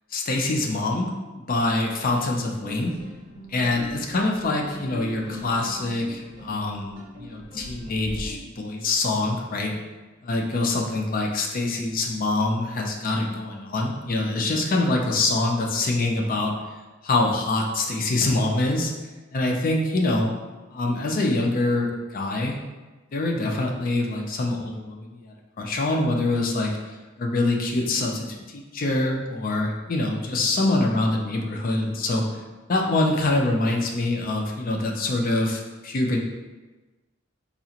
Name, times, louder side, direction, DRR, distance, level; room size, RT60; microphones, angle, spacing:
voice 1, 0.1-3.0 3.5-9.8 10.2-16.5 17.0-18.9 19.3-20.3 20.7-22.6 23.1-26.8 27.2-32.3 32.7-36.2, left 2 dB, 45° left, 1 dB, 0.5 m, -25 dB
sound 1, 2.6-8.3, equal, 75° right, 1.2 m, -40 dB
4.0 x 2.4 x 2.8 m, 1.2 s
head